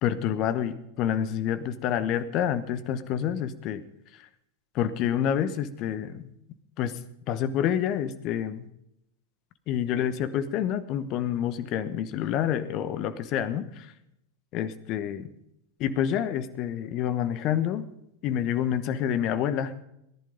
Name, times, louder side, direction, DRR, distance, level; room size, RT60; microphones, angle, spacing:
voice 1, 0.0-3.8 4.7-6.3 6.8-7.0 7.3-8.7 9.7-13.9 14.5-15.3 15.8-17.9 18.2-19.8, left 9 dB, 40° left, 13 dB, 1.1 m, -28 dB
18.5 x 11.0 x 5.3 m, 0.79 s
figure-of-eight pair, 90°, 0 cm